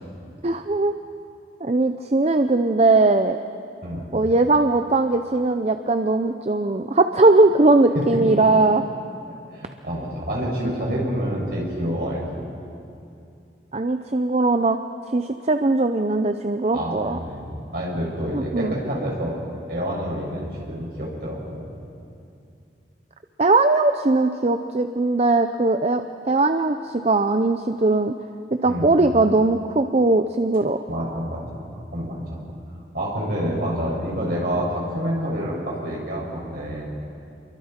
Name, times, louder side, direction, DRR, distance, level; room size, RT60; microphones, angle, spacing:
voice 1, 0.4-0.9 1.6-3.4 4.1-8.8 13.7-14.8 15.1-17.2 18.3-18.7 23.4-28.1 28.5-30.8, right 2 dB, 35° right, 8 dB, 0.6 m, -19 dB
voice 2, 9.3-12.5 16.7-17.0 17.2-19.4 19.7-21.7 28.6-28.9 30.9-31.7 31.9-32.4 32.9-36.8, equal, 55° right, -3 dB, 6.3 m, -28 dB
29.0 x 23.0 x 4.4 m, 2.5 s
head